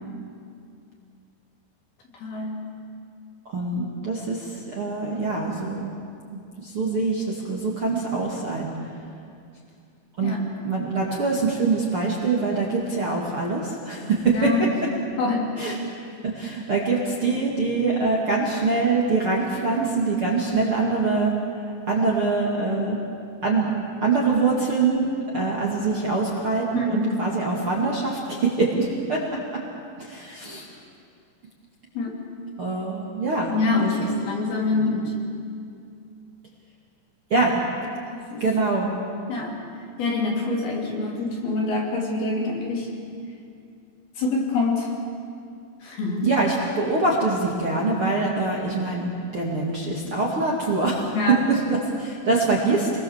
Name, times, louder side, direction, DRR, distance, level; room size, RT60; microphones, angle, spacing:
voice 1, 2.1-2.7 10.2-10.4 14.3-14.7 15.2-15.5 26.7-27.3 31.9-32.1 33.5-35.1 38.1-38.5 39.3-39.6 40.0-42.9 44.2-44.9 45.8-46.3 51.1-51.4, left 3 dB, 55° left, -1 dB, 4.9 m, -25 dB
voice 2, 3.5-5.9 6.3-8.7 10.2-10.4 10.6-14.5 15.6-15.8 16.2-21.3 21.9-23.0 23.4-23.7 24.0-25.1 25.3-29.2 30.0-30.7 32.6-33.5 33.8-33.9 37.3-37.6 38.4-38.9 46.2-51.0 51.5-53.0, right 3 dB, 40° right, -3 dB, 2.3 m, -24 dB
28.0 x 21.5 x 7.4 m, 2.4 s
omnidirectional pair, 5.4 m